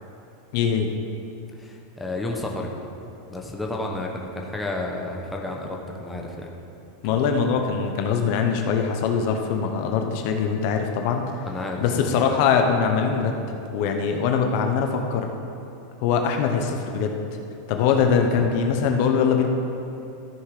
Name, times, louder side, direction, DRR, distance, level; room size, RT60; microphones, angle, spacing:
voice 1, 0.5-0.9 7.0-11.2 11.8-13.4 13.7-15.3 16.0-17.1 17.7-19.5, left 6 dB, 55° left, 4 dB, 0.9 m, -22 dB
voice 2, 1.6-2.7 3.3-6.5 7.1-7.2 11.5-12.1 18.4-18.6, left 2 dB, 5° left, 0 dB, 1.0 m, -31 dB
13.5 x 5.8 x 4.9 m, 2.7 s
supercardioid pair, 145°, 0 cm